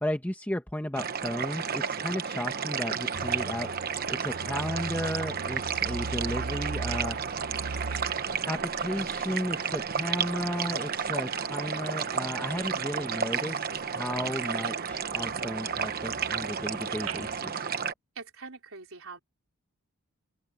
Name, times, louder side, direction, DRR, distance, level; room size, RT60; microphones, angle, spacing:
voice 1, 0.0-3.7 4.1-7.2 8.5-17.7, equal, 10° left, 1.5 m, -34 dB
sound 1, 0.9-17.9, right 6 dB, 45° right, 1.1 m, -32 dB
sound 2, 3.1-10.6 11.0-12.0 12.4-12.7 12.9-13.8 14.1-14.7 15.0-17.4, right 4 dB, 80° right, 0.9 m, -40 dB
voice 2, 18.1-19.2, right 4 dB, 65° right, 4.3 m, -43 dB
open air
head